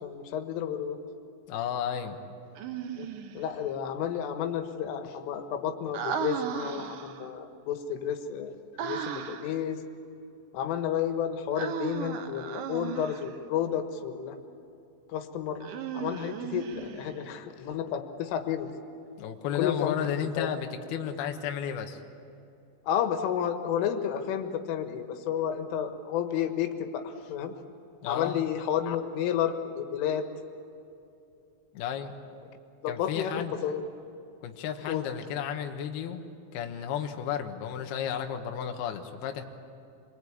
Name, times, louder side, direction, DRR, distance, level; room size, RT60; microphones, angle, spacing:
voice 1, 0.0-1.0 2.9-3.1 3.4-8.5 8.8-9.8 10.5-14.4 15.1-15.7 15.9-18.7 19.6-20.5 22.9-27.5 28.1-30.3 32.8-33.8 34.9-35.0, left 9 dB, 90° left, 7 dB, 4.0 m, -31 dB
voice 2, 1.5-2.2 19.2-22.0 28.0-28.4 31.7-32.1 32.9-33.5 34.4-36.3 36.5-39.5, left 8 dB, 65° left, 4 dB, 2.8 m, -33 dB
Human voice, 2.6-3.4 5.9-7.3 8.8-9.6 11.6-13.4 15.6-17.2, right 8 dB, 85° right, 1.8 m, -35 dB
26.5 x 23.0 x 8.6 m, 2.7 s
omnidirectional pair, 5.6 m